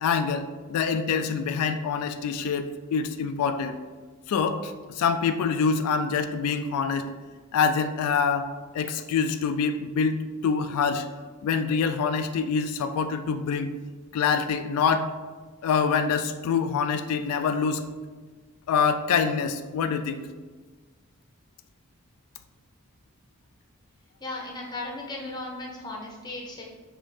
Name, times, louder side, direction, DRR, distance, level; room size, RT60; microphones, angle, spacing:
voice 1, 0.0-3.8 4.3-7.1 7.5-8.5 8.7-11.1 11.4-13.7 14.1-15.1 15.6-17.8 18.7-20.2, left 6 dB, 85° left, 11 dB, 0.3 m, -25 dB
voice 2, 24.2-26.6, left 2 dB, 20° left, -1 dB, 0.7 m, -36 dB
5.5 x 2.9 x 3.3 m, 1.4 s
head